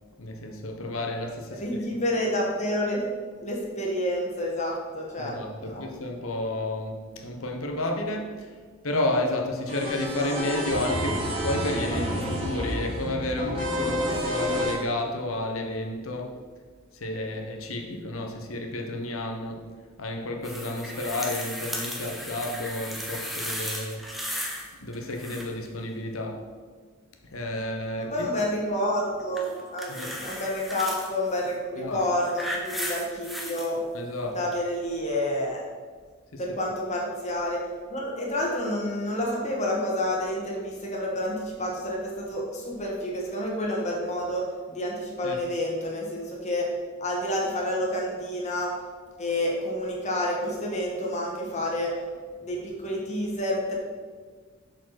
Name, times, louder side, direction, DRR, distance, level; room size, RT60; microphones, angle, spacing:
voice 1, 0.2-1.8 5.2-8.5 8.8-16.4 16.9-19.7 20.0-24.1 24.8-26.5 27.3-28.3 29.9-30.1 31.8-32.0 33.9-34.4 36.3-36.4 45.2-45.4, left 2 dB, 85° left, 3 dB, 1.1 m, -31 dB
voice 2, 1.5-3.0 3.4-5.4 5.6-5.9 28.0-33.8 34.3-35.6 36.4-37.6 37.9-46.7 47.0-48.7 49.2-51.9 52.4-53.8, left 1 dB, 35° left, -2 dB, 1.6 m, -29 dB
sound 1, 9.7-14.7, equal, 30° right, 2.3 m, -29 dB
sound 2, 20.4-24.7 24.9-25.7 29.3-31.1 31.9-33.7 34.5-34.6, equal, ahead, 1.0 m, -35 dB
7.1 x 5.0 x 5.9 m, 1.5 s
head